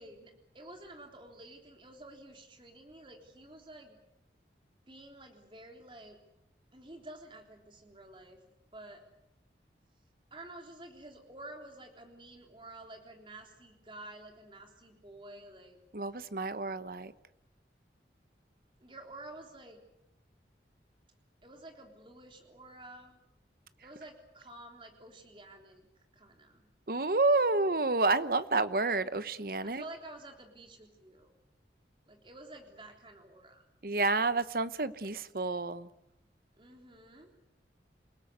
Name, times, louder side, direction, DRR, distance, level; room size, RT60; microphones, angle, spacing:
voice 1, 0.0-4.0 4.9-6.2 6.7-8.4 8.7-9.0 10.3-15.8 18.8-19.8 21.4-23.2 23.8-25.9 26.1-26.7 29.6-31.3 32.1-33.6 36.5-37.3, right 1 dB, 30° right, 3 dB, 3.5 m, -50 dB
voice 2, 15.9-17.1 26.9-29.8 33.8-35.9, right 3 dB, 55° right, 14 dB, 1.0 m, -29 dB
28.5 x 18.0 x 8.1 m, 0.89 s
head